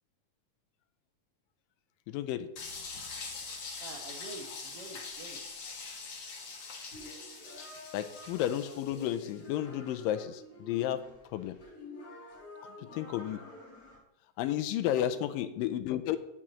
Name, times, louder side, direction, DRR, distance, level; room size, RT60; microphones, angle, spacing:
voice 1, 2.1-2.5 7.9-11.0 11.3-11.5 12.9-13.4 14.4-16.2, left 11 dB, 85° left, 11 dB, 2.2 m, -32 dB
sound 1, 2.5-9.4, left 4 dB, 55° left, 2.0 m, -43 dB
voice 2, 3.8-5.4 14.8-15.3, right 3 dB, 75° right, 1 dB, 1.4 m, -47 dB
sound 2, 6.9-14.0, left 1 dB, 30° left, 3.2 m, -49 dB
16.0 x 6.2 x 3.0 m, 0.83 s
omnidirectional pair, 4.0 m